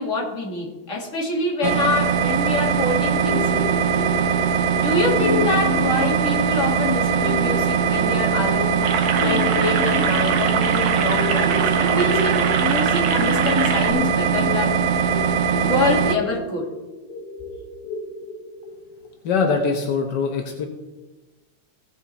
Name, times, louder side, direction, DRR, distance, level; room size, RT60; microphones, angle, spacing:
voice 1, 0.0-3.6 4.8-14.8 15.5-16.7, left 2 dB, 30° left, -2 dB, 2.0 m, -25 dB
sound 1, 1.6-16.2, right 7 dB, 90° right, 2.1 m, -21 dB
sound 2, 3.1-19.1, left 4 dB, 55° left, 1.9 m, -32 dB
sound 3, 8.8-13.9, right 6 dB, 70° right, 1.0 m, -26 dB
voice 2, 19.2-20.6, left 5 dB, 75° left, 2 dB, 1.0 m, -22 dB
17.0 x 5.7 x 4.1 m, 1.1 s
omnidirectional pair, 3.3 m